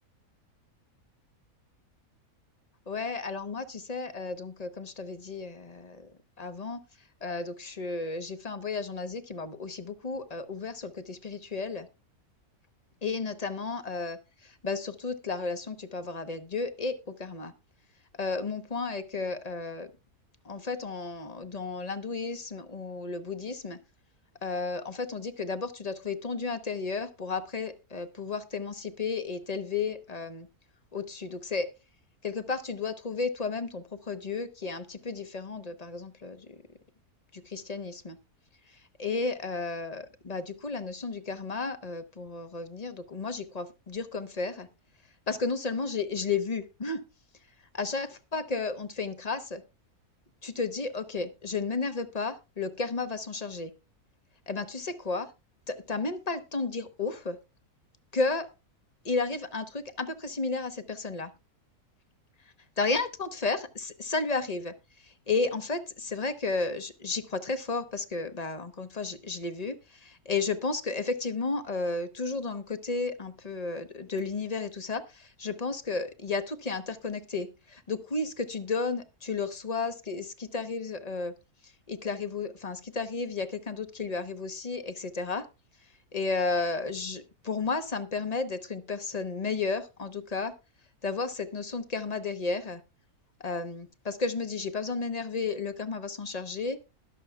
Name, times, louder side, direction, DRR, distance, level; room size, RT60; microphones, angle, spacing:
voice 1, 2.9-6.1 6.4-6.8 7.2-11.9 13.0-17.5 18.2-19.9 20.4-23.8 24.4-30.5 30.9-31.7 32.2-36.6 37.3-38.2 38.7-44.7 45.3-47.0 47.7-49.6 50.4-53.7 54.5-55.3 55.7-57.4 58.1-58.5 59.0-61.3 62.8-81.3 81.6-85.5 86.1-90.5 91.0-92.8 93.4-96.8, left 4 dB, 30° left, 10 dB, 0.9 m, -33 dB
20.5 x 6.9 x 2.3 m, 0.27 s
omnidirectional pair, 1.6 m